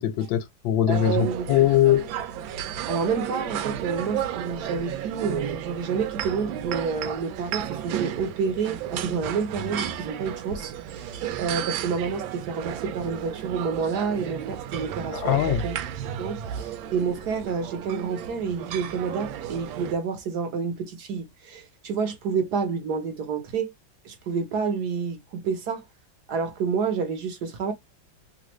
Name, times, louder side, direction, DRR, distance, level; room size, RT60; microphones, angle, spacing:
voice 1, 0.0-2.1 15.1-15.6, left 11 dB, 80° left, 1.3 m, -22 dB
voice 2, 0.9-1.4 2.9-15.8 16.0-23.7 24.0-25.8 26.3-27.7, right 5 dB, 65° right, 1.2 m, -29 dB
sound 1, 0.9-19.9, right 10 dB, 90° right, 1.3 m, -33 dB
3.3 x 2.5 x 3.0 m
omnidirectional pair, 2.0 m